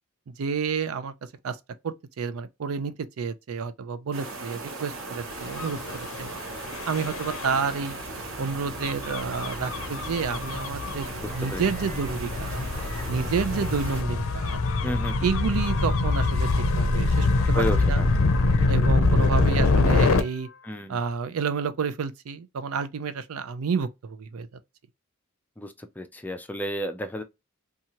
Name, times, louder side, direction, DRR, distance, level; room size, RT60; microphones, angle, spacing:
voice 1, 0.3-1.1 1.4-1.6 1.8-6.3 6.9-8.0 8.4-12.6 13.1-14.7 15.2-18.0 18.7-20.5 20.9-24.5, right 5 dB, 85° right, 0.4 m, -30 dB
sound 1, 4.1-14.0, right 3 dB, 65° right, 0.9 m, -38 dB
Gull seagull / Waves surf / Siren, 5.5-20.2, left 3 dB, 75° left, 0.5 m, -25 dB
voice 2, 11.2-11.6 14.8-15.3 17.5-18.1 20.6-21.0 25.6-27.2, left 1 dB, 10° left, 0.4 m, -32 dB
2.7 x 2.4 x 2.8 m
head